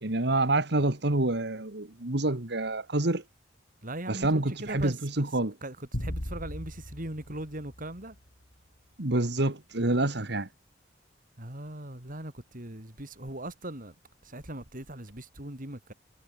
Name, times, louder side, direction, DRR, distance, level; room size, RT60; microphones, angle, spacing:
voice 1, 0.0-3.2 4.1-5.5 9.0-10.5, right 2 dB, 65° right, 2.0 m, -27 dB
voice 2, 3.8-5.2 5.6-8.2 11.4-13.9 14.2-15.9, right 1 dB, 50° right, 4.7 m, -39 dB
sound 1, 5.9-8.4, equal, 65° left, 4.2 m, -38 dB
head